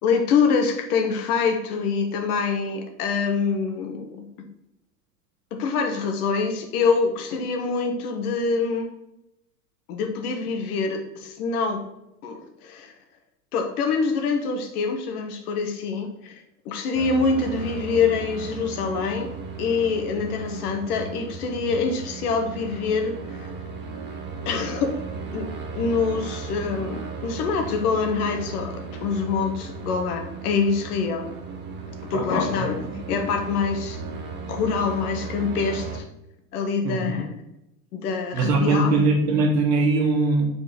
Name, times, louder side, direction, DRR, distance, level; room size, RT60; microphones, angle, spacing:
voice 1, 0.0-4.5 5.5-8.9 9.9-11.8 12.2-12.9 13.5-19.3 19.6-23.5 24.4-25.0 25.3-25.5 25.7-31.3 32.1-34.0 34.5-36.0 36.5-37.4 37.9-39.1, left 5 dB, 60° left, 5 dB, 1.4 m, -25 dB
sound 1, 16.9-36.0, right 4 dB, 20° right, 0.9 m, -35 dB
voice 2, 32.1-33.0 36.8-37.2 38.3-40.6, right 3 dB, 75° right, 1 dB, 1.9 m, -22 dB
5.6 x 4.5 x 4.4 m, 0.86 s
hypercardioid pair, 110°, 50 cm